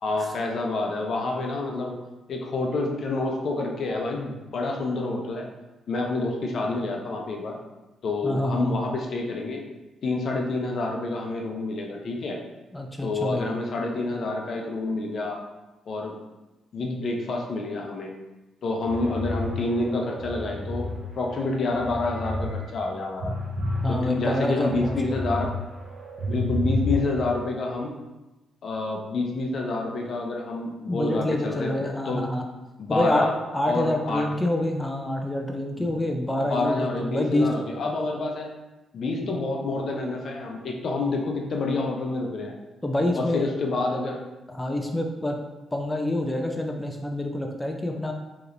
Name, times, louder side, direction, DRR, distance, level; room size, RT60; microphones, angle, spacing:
voice 1, 0.0-2.0 2.3-5.5 5.9-7.6 8.0-9.6 10.0-12.4 13.0-15.4 15.9-16.1 16.7-18.1 18.6-23.3 23.9-25.5 26.3-28.0 28.6-32.3 32.8-33.3 33.6-34.2 35.8-35.9 36.4-38.5 38.9-42.5 43.2-44.2, left 2 dB, 60° left, 1 dB, 0.7 m, -28 dB
voice 2, 8.2-8.8 12.7-13.4 23.8-25.2 30.9-32.4 32.9-37.5 39.2-39.3 42.8-43.5 44.5-45.4 45.7-48.1, left 1 dB, 15° left, 2 dB, 0.5 m, -27 dB
sound 1, 18.9-20.9 21.4-22.5 22.8-25.5 25.8-27.3, left 1 dB, 65° right, 0.8 m, -30 dB
4.8 x 3.0 x 2.6 m, 1.1 s
supercardioid pair, 65°, 0 cm